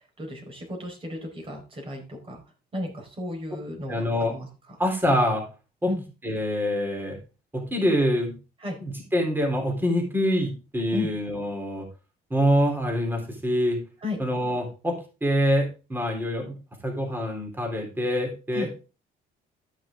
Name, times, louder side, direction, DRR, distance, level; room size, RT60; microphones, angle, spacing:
voice 1, 0.0-2.4 2.7-4.0 4.3-4.5 5.9-6.0 8.6-8.8 10.9-11.1 14.0-14.2 18.5-18.7, left 2 dB, 30° right, 1 dB, 4.7 m, -33 dB
voice 2, 3.9-4.3 4.8-5.4 5.8-5.9 6.2-7.2 7.5-8.3 8.8-11.9 12.3-13.8 14.2-14.9 15.2-16.5 16.8-18.7, equal, 10° right, 2 dB, 3.6 m, -25 dB
13.0 x 6.3 x 3.7 m, 0.32 s
cardioid pair, 110°, 17 cm